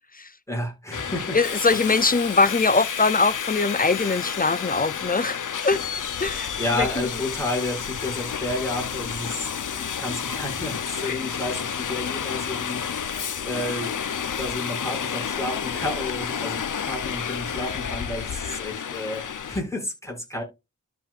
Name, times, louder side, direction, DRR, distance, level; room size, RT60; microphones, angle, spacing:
voice 1, 0.5-1.4 1.8-2.0 6.6-20.4, left 1 dB, 10° left, 6.0 m, -31 dB
Subway metro underground, 0.9-19.6, left 7 dB, 75° left, 0.8 m, -30 dB
voice 2, 1.3-6.5 6.8-6.9, left 3 dB, 30° left, 0.5 m, -22 dB
13.0 x 5.5 x 2.5 m
wide cardioid pair, 60°, 31 cm